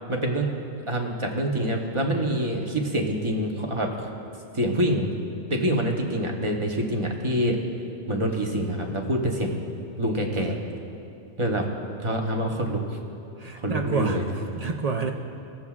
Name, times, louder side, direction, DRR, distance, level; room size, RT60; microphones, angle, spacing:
voice 1, 0.1-0.5 0.9-4.1 4.5-5.1 5.5-7.6 8.1-9.6 10.0-10.6 11.4-11.7 12.0-13.0 13.6-14.2, right 1 dB, 30° right, 1 dB, 0.9 m, -26 dB
voice 2, 13.4-15.1, right 5 dB, 55° right, 3 dB, 0.4 m, -29 dB
21.5 x 7.2 x 2.4 m, 2.6 s
omnidirectional pair, 1.2 m